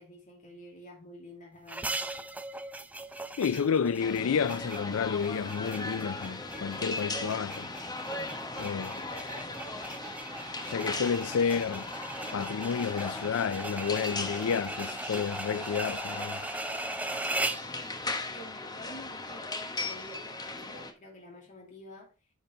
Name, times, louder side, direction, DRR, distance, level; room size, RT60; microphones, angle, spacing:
voice 1, 0.0-2.0 18.3-22.1, left 1 dB, 40° left, 2.5 m, -49 dB
sound 1, 1.7-17.7, right 2 dB, 5° right, 0.5 m, -39 dB
voice 2, 3.4-7.7 8.6-9.1 10.7-11.9 12.3-16.4, left 6 dB, 85° left, 0.4 m, -30 dB
sound 2, 4.0-20.9, left 2 dB, 20° left, 1.2 m, -38 dB
10.0 x 5.2 x 3.9 m
head